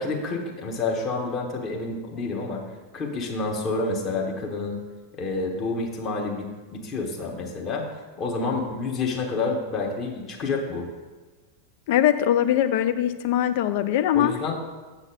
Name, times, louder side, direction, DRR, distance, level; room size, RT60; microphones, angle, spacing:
voice 1, 0.0-2.6 2.9-4.8 5.2-7.9 8.2-10.9 14.1-14.5, left 3 dB, 30° left, 0 dB, 1.4 m, -28 dB
voice 2, 11.9-14.3, left 11 dB, 50° left, 10 dB, 0.4 m, -21 dB
7.8 x 6.0 x 4.0 m, 1.3 s
figure-of-eight pair, 90°, 0 cm